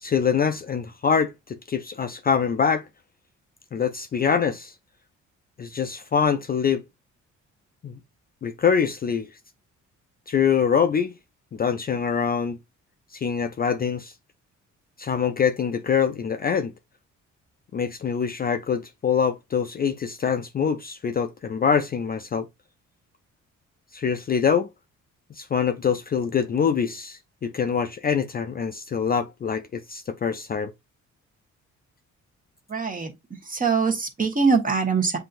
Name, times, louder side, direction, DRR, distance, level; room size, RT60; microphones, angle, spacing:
voice 1, 0.0-2.9 3.7-4.7 5.6-6.8 7.8-8.0 8.4-9.3 10.3-11.2 11.5-12.6 13.1-14.1 15.0-16.7 17.7-22.5 23.9-24.7 25.3-30.7, left 7 dB, 30° left, 0.4 m, -24 dB
voice 2, 32.7-33.1 33.5-35.2, right 5 dB, 30° right, 1.3 m, -23 dB
7.4 x 2.7 x 2.5 m
cardioid pair, 90°, 30 cm